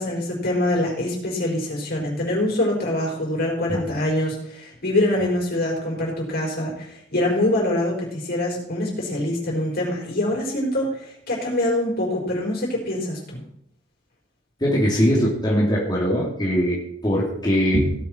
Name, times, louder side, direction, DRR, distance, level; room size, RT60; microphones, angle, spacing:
voice 1, 0.0-13.4, left 1 dB, 50° left, -2 dB, 4.7 m, -24 dB
voice 2, 14.6-17.9, equal, 20° left, -4 dB, 2.7 m, -21 dB
17.0 x 7.8 x 4.5 m, 0.72 s
head